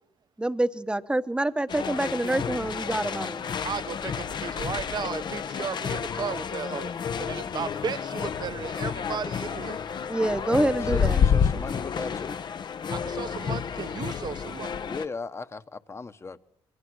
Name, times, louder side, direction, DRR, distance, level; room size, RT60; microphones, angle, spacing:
voice 1, 0.4-3.5 10.1-11.2, right 1 dB, 10° right, 1.1 m, -26 dB
sound 1, 1.7-15.1, left 7 dB, 45° left, 0.9 m, -30 dB
voice 2, 3.6-6.9 7.2-9.8 12.9-14.8, right 7 dB, 45° right, 1.0 m, -35 dB
voice 3, 10.8-12.4 14.9-16.4, left 4 dB, 25° left, 1.2 m, -37 dB
26.5 x 22.5 x 6.3 m
cardioid pair, 105°, 10 cm